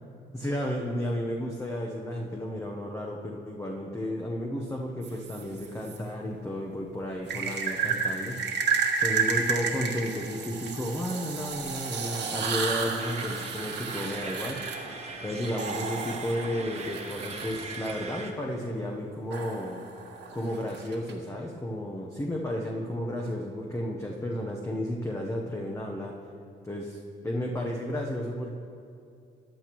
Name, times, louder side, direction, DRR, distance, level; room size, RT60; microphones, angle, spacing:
voice 1, 0.3-8.4 9.0-14.7 15.2-19.8 20.3-26.1 26.6-28.5, equal, 15° left, -1 dB, 1.0 m, -33 dB
sound 1, 5.0-6.0 7.3-17.9 19.3-21.1, right 5 dB, 60° right, 1.5 m, -32 dB
sound 2, 13.0-18.3, right 3 dB, 30° right, 1.3 m, -40 dB
14.5 x 10.5 x 3.1 m, 2.4 s
cardioid pair, 90°, 20 cm